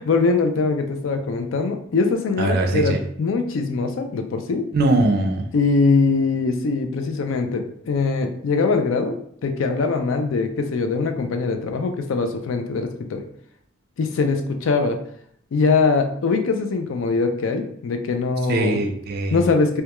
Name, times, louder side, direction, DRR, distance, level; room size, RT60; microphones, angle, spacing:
voice 1, 0.0-4.7 5.5-9.2 9.4-13.2 14.0-15.0 15.5-18.8 19.3-19.8, left 4 dB, 75° left, 5 dB, 0.4 m, -22 dB
voice 2, 2.4-3.0 4.7-5.5 18.5-19.4, right 2 dB, 50° right, 3 dB, 0.4 m, -21 dB
2.2 x 2.2 x 2.9 m, 0.68 s
head